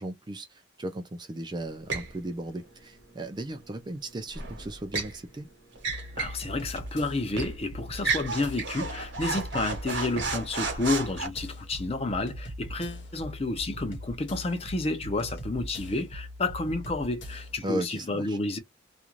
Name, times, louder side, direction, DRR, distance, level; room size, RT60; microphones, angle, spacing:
voice 1, 0.0-5.5 17.6-18.4, right 1 dB, 25° right, 0.4 m, -36 dB
sound 1, 1.9-2.1 4.3-5.2 5.8-6.4 6.8-6.9 7.4-7.6 8.0-11.3, right 4 dB, 70° right, 1.0 m, -32 dB
sound 2, 5.9-17.6, equal, 70° left, 1.0 m, -41 dB
voice 2, 6.2-18.6, left 2 dB, 30° left, 0.6 m, -30 dB
2.5 x 2.2 x 2.9 m
head